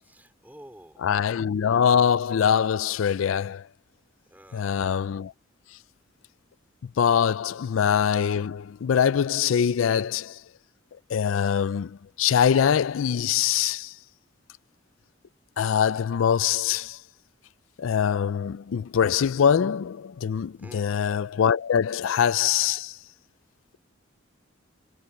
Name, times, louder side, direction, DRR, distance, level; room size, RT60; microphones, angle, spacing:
voice 1, 0.0-1.2 4.3-4.9 7.5-7.7 20.6-21.0, right 1 dB, 10° right, 3.6 m, -50 dB
voice 2, 1.0-3.6 4.5-5.3 7.0-10.4 11.1-13.9 15.6-17.0 17.8-22.9, left 8 dB, 85° left, 0.4 m, -23 dB
head